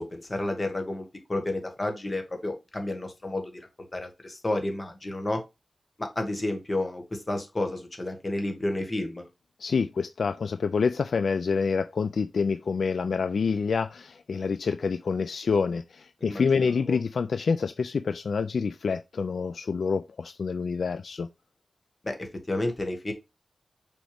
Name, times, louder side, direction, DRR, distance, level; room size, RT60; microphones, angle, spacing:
voice 1, 0.0-5.4 6.0-9.3 16.2-17.0 22.0-23.1, left 1 dB, 30° left, 1.7 m, -31 dB
voice 2, 9.6-21.3, left 5 dB, 75° left, 0.4 m, -27 dB
6.3 x 4.5 x 3.4 m
wide cardioid pair, 90°, 0 cm